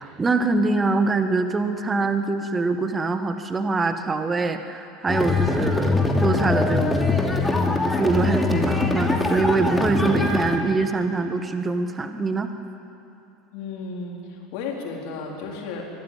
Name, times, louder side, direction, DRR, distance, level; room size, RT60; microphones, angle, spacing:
voice 1, 0.0-7.1 7.5-12.5, right 3 dB, 20° right, 8 dB, 1.5 m, -24 dB
sound 1, 5.1-10.6, left 3 dB, 10° left, 2.8 m, -22 dB
voice 2, 13.5-15.8, left 4 dB, 60° left, -1 dB, 4.1 m, -33 dB
22.0 x 14.5 x 9.2 m, 2.9 s
figure-of-eight pair, 75°, 0 cm